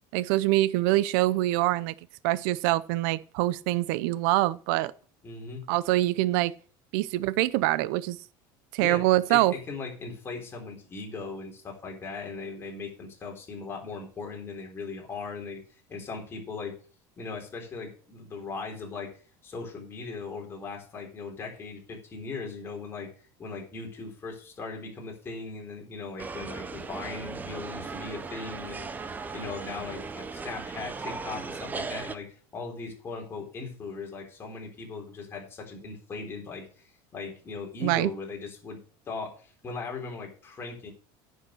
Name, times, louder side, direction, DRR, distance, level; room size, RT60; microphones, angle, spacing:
voice 1, 0.1-1.9 2.2-4.9 5.7-6.5 6.9-8.2 8.7-9.5 37.8-38.1, right 16 dB, 70° right, 0.6 m, -24 dB
voice 2, 5.2-5.6 8.8-16.8 17.2-19.1 19.4-23.1 23.4-28.9 29.3-36.7 37.1-38.8 39.1-40.9, left 4 dB, 20° left, 3.8 m, -39 dB
sound 1, 26.2-32.2, right 4 dB, 15° right, 0.7 m, -37 dB
10.0 x 6.5 x 6.3 m
cardioid pair, 155°, 11 cm